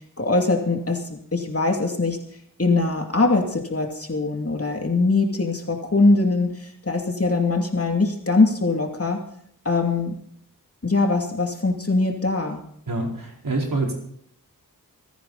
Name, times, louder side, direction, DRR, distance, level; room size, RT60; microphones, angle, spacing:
voice 1, 0.2-2.2 2.6-9.2 9.6-10.2 10.8-12.6, left 3 dB, 40° left, 3 dB, 2.7 m, -22 dB
voice 2, 12.9-13.9, right 2 dB, 65° right, -1 dB, 4.7 m, -26 dB
26.0 x 10.0 x 4.1 m, 0.68 s
cardioid pair, 45°, 37 cm